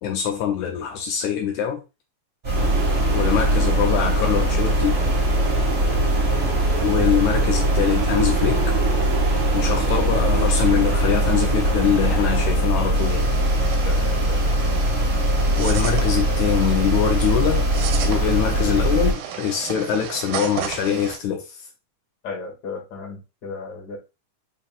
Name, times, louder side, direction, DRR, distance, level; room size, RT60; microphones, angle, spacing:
voice 1, 0.0-1.8 3.1-5.0 6.8-8.8 9.5-13.3 15.6-17.7 18.0-21.6, left 9 dB, 80° left, 2 dB, 2.1 m, -23 dB
sound 1, 2.4-19.1, right 1 dB, 20° right, 1.5 m, -21 dB
sound 2, 2.5-12.6, right 6 dB, 70° right, 2.2 m, -29 dB
voice 2, 9.7-10.0 13.8-14.5 22.2-24.0, left 4 dB, 45° left, -1 dB, 1.8 m, -35 dB
sound 3, 12.9-21.2, right 8 dB, 90° right, 2.1 m, -33 dB
5.2 x 3.7 x 2.4 m, 0.27 s
omnidirectional pair, 3.5 m